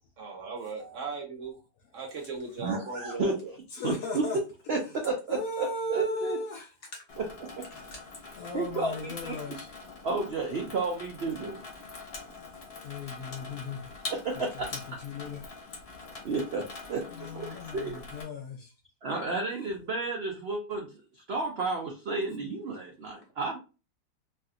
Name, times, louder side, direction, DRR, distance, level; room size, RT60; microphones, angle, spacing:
voice 1, 0.2-1.6 1.9-3.5, right 4 dB, 60° right, 0.9 m, -38 dB
voice 2, 2.6-3.3 3.8-4.2 4.7-4.8 5.0-6.4 7.2-7.3 8.5-9.6 10.0-11.6 14.4-14.7 16.2-16.6 16.9-17.5 17.7-18.0 19.0-20.9 21.3-23.6, right 3 dB, 80° right, 0.5 m, -31 dB
voice 3, 3.8-4.4 5.3-6.7 7.9-8.0 8.3-9.7 12.8-13.9 15.0-15.4 17.2-18.7, left 3 dB, 70° left, 0.8 m, -36 dB
Water tap faucet / Sink (filling or washing), 7.1-18.2, left 3 dB, 45° left, 1.0 m, -44 dB
3.2 x 2.8 x 2.4 m
omnidirectional pair, 1.9 m